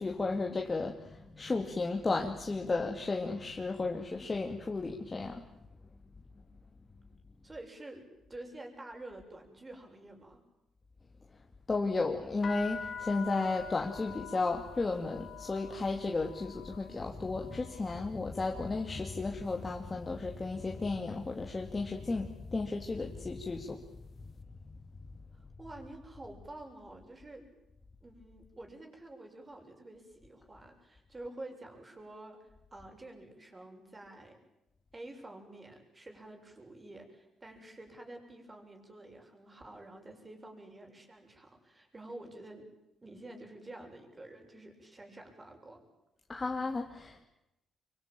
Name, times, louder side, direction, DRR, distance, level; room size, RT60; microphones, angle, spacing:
voice 1, 0.0-5.4 11.7-23.8 24.7-24.8 46.3-47.2, left 3 dB, 25° left, 2 dB, 2.6 m, -34 dB
voice 2, 7.4-10.4 25.3-27.5 28.0-34.4 34.9-42.7 43.0-45.8, right 2 dB, 25° right, 3 dB, 7.2 m, -49 dB
sound 1, 12.4-20.3 20.6-21.2 21.9-22.1 22.4-23.9, left 6 dB, 45° left, 1.6 m, -47 dB
25.5 x 24.0 x 9.1 m, 0.90 s
cardioid pair, 90°, 0 cm